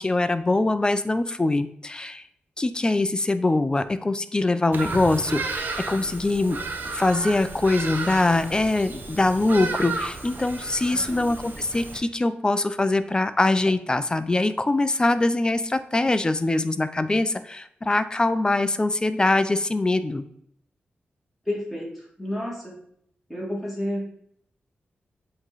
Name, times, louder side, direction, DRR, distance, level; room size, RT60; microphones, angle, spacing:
voice 1, 0.0-2.2 2.6-6.6 6.9-20.2, left 2 dB, 20° left, 12 dB, 0.4 m, -23 dB
Bird vocalization bird call bird song, 4.7-12.0, right 3 dB, 60° right, 0.7 m, -33 dB
voice 2, 10.9-11.3 21.4-22.7 23.3-24.2, left 1 dB, ahead, -4 dB, 2.3 m, -31 dB
7.7 x 3.0 x 4.0 m, 0.69 s
wide cardioid pair, 95°, 4 cm